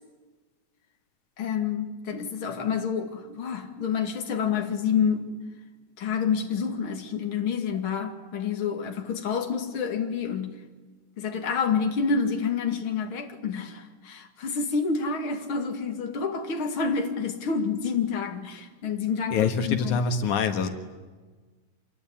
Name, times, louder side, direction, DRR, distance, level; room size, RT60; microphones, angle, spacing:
voice 1, 1.4-5.3 6.0-10.6 11.2-20.0 20.6-20.7, left 6 dB, 45° left, 4 dB, 3.0 m, -28 dB
voice 2, 19.3-20.7, left 6 dB, 80° left, 7 dB, 3.0 m, -25 dB
26.5 x 22.5 x 10.0 m, 1.3 s
omnidirectional pair, 3.4 m